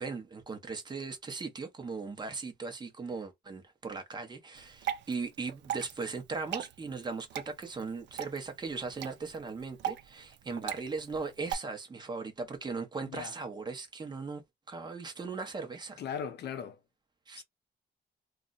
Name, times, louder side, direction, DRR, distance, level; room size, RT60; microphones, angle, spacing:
voice 1, 0.0-14.4 14.7-16.0 17.3-17.4, right 4 dB, 25° right, 0.8 m, -38 dB
Water / Drip, 4.5-11.5, right 10 dB, 85° right, 0.5 m, -40 dB
voice 2, 13.0-13.3 16.0-16.8 17.4-17.5, left 7 dB, 70° left, 0.6 m, -38 dB
2.3 x 2.1 x 3.9 m
wide cardioid pair, 160°, 18 cm